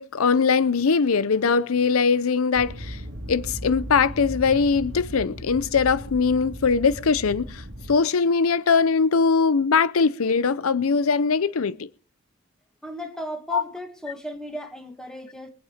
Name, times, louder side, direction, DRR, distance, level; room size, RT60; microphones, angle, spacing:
voice 1, 0.0-3.0 3.3-11.9 13.5-13.6, left 5 dB, 85° left, 0.6 m, -21 dB
sound 1, 2.5-8.0, equal, 85° right, 2.6 m, -37 dB
voice 2, 12.8-15.5, left 1 dB, 5° left, 2.1 m, -35 dB
23.0 x 8.9 x 5.0 m
head